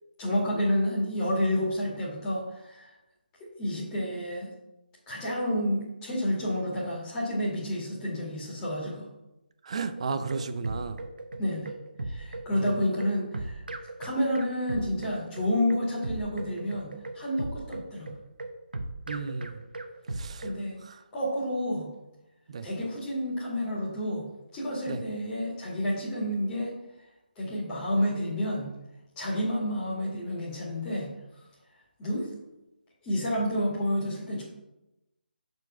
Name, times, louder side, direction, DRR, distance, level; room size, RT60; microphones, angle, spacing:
voice 1, 0.2-2.9 3.6-4.5 5.1-9.1 11.4-11.7 12.0-13.6 14.0-18.1 20.4-20.8 21.1-21.9 22.6-24.2 24.5-26.7 27.4-28.7 29.2-31.1 32.0-32.3 33.0-34.4, equal, 15° left, -6 dB, 2.2 m, -29 dB
voice 2, 9.6-11.0 12.5-12.6 19.1-19.6 20.2-20.4 20.9-21.0 22.5-22.7 24.9-25.0, right 4 dB, 35° right, 10 dB, 0.6 m, -33 dB
sound 1, 10.0-20.6, right 2 dB, 60° right, 0.9 m, -37 dB
7.6 x 4.5 x 5.6 m, 0.93 s
figure-of-eight pair, 150°, 6 cm